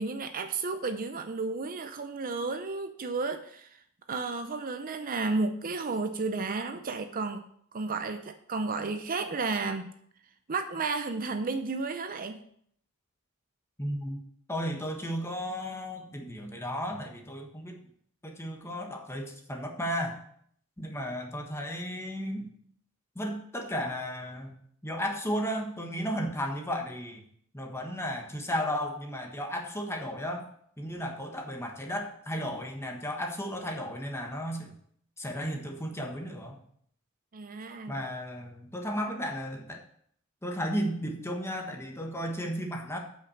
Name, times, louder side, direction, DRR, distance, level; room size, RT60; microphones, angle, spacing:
voice 1, 0.0-3.8 4.1-7.4 7.7-9.9 10.5-12.4 37.3-38.0, right 3 dB, 40° right, 8 dB, 0.6 m, -32 dB
voice 2, 13.8-14.2 14.5-17.8 18.2-20.2 20.8-22.5 23.1-24.6 24.8-27.2 27.5-30.5 30.8-34.7 35.2-36.6 37.9-39.8 40.4-43.0, equal, 10° left, 2 dB, 1.4 m, -34 dB
8.2 x 5.8 x 6.4 m, 0.65 s
head